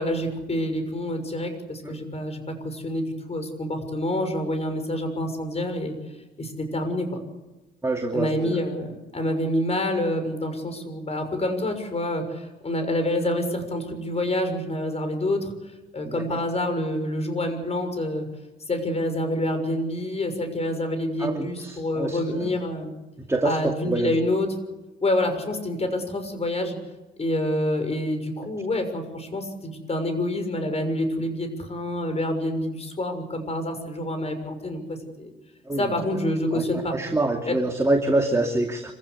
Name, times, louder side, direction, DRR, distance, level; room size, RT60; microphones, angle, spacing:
voice 1, 0.0-5.9 6.4-7.2 8.1-18.3 18.7-22.9 23.4-24.5 25.0-26.8 27.2-35.3 35.8-37.0 37.5-37.6, left 1 dB, 30° left, 7 dB, 6.5 m, -27 dB
voice 2, 7.8-8.6 16.0-16.4 21.2-22.5 23.3-23.6 23.8-24.1 35.7-35.8 36.5-36.6 36.9-38.9, right 2 dB, 15° right, 3 dB, 2.6 m, -25 dB
26.0 x 16.0 x 8.3 m, 1.1 s
cardioid pair, 90°, 20 cm